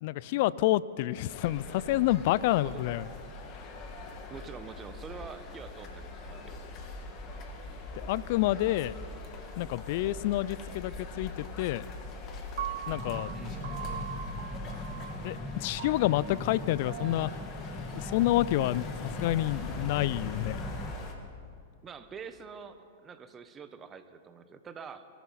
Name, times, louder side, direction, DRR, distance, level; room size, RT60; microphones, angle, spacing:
voice 1, 0.0-3.0 7.9-8.9 9.6-11.9 12.9-13.3 15.2-17.3 17.9-20.6, left 15 dB, 55° left, 20 dB, 0.4 m, -28 dB
sound 1, 1.3-21.1, left 2 dB, 35° left, 2.0 m, -42 dB
voice 2, 4.3-6.6 13.3-13.7 21.8-25.1, right 6 dB, 25° right, 10 dB, 1.1 m, -46 dB
Piano, 12.6-18.8, right 10 dB, 60° right, 0.9 m, -42 dB
sound 2, 12.9-20.9, left 2 dB, 5° left, 1.0 m, -41 dB
24.0 x 13.5 x 4.2 m, 2.5 s
figure-of-eight pair, 100°, 0 cm